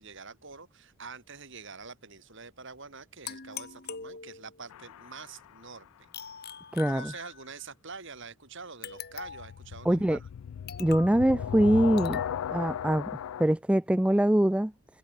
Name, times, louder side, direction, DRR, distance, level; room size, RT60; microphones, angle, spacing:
voice 1, 0.0-6.1 6.9-10.3, right 4 dB, 55° right, 3.7 m, -46 dB
sound 1, 3.3-4.7 6.1-7.6 8.8-9.6 10.7-11.2 12.0-12.3, left 7 dB, 45° left, 1.9 m, -42 dB
sound 2, 4.7-5.6 9.1-13.4, left 8 dB, 75° left, 0.3 m, -36 dB
voice 2, 6.7-7.1 9.8-10.2 10.8-12.2 12.5-13.1 13.4-14.7, right 1 dB, 5° right, 0.3 m, -23 dB
head